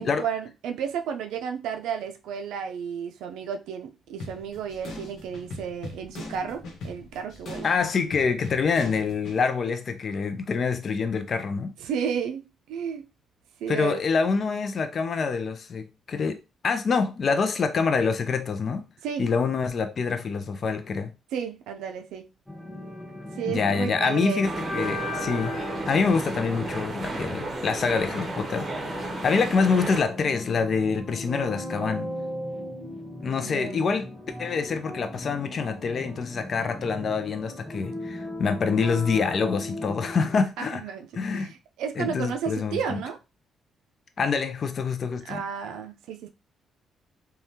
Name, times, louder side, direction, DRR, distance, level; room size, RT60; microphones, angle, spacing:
voice 1, 0.0-7.7 11.8-13.1 13.6-14.0 19.0-19.3 21.3-22.3 23.4-24.6 33.4-34.0 40.6-41.0 41.3-43.2 45.2-46.3, right 7 dB, 90° right, 0.4 m, -32 dB
sound 1, 4.2-9.4, left 2 dB, 75° left, 1.0 m, -40 dB
voice 2, 7.6-11.7 13.7-16.4 16.6-18.9 19.2-21.1 23.5-25.5 25.9-32.1 33.2-40.8 41.2-41.5 42.0-43.0 44.2-45.4, left 5 dB, 50° left, 0.4 m, -26 dB
sound 2, 22.5-40.4, left 1 dB, 5° right, 0.8 m, -37 dB
sound 3, 24.4-30.0, right 2 dB, 40° right, 0.7 m, -34 dB
3.3 x 2.3 x 2.7 m
cardioid pair, 90°, 0 cm